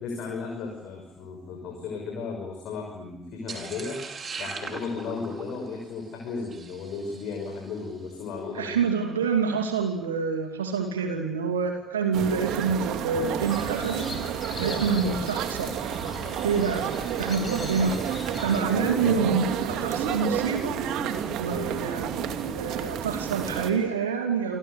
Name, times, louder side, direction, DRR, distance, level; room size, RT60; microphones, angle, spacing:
voice 1, 0.0-4.0 4.4-8.8 18.5-19.3 19.8-20.1 21.5-21.7, left 4 dB, 60° left, 2 dB, 6.2 m, -35 dB
sound 1, 3.5-7.8, right 4 dB, 40° right, 5.1 m, -40 dB
voice 2, 8.5-14.1 14.6-15.7 16.4-16.9 17.2-18.0 18.4-20.8 21.4-24.6, right 5 dB, 80° right, 4 dB, 2.8 m, -27 dB
sound 2, 12.1-23.7, right 9 dB, 60° right, 2.6 m, -30 dB
sound 3, 13.4-18.6, left 4 dB, 35° left, 7.7 m, -40 dB
29.0 x 24.0 x 8.4 m, 0.82 s
figure-of-eight pair, 50°, 0 cm